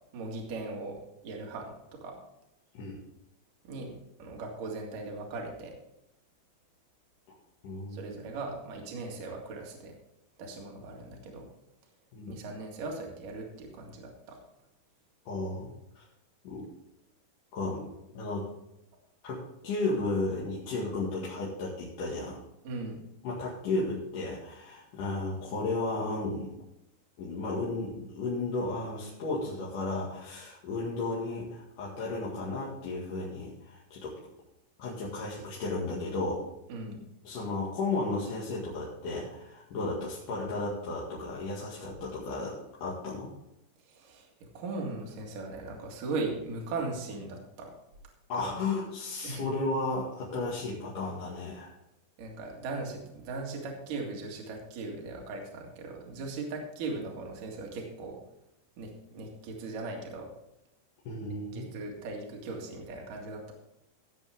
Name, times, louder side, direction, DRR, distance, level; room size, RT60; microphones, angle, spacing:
voice 1, 0.1-1.0 1.2-2.2 3.6-5.8 7.9-9.9 10.4-11.4 12.3-14.4 22.6-23.0 36.7-37.0 43.9-47.7 48.4-48.6 49.2-49.5 52.2-58.2 58.8-60.3 61.5-63.5, right 3 dB, 55° right, 0 dB, 3.2 m, -38 dB
voice 2, 7.6-8.1 12.1-12.3 15.3-16.0 16.4-16.7 17.5-17.9 18.1-18.5 19.2-22.4 23.2-26.6 27.2-34.1 34.8-36.5 37.2-43.3 48.3-51.7 61.0-61.7, left 2 dB, 55° left, -6 dB, 3.1 m, -34 dB
16.0 x 7.9 x 3.6 m, 0.85 s
omnidirectional pair, 5.3 m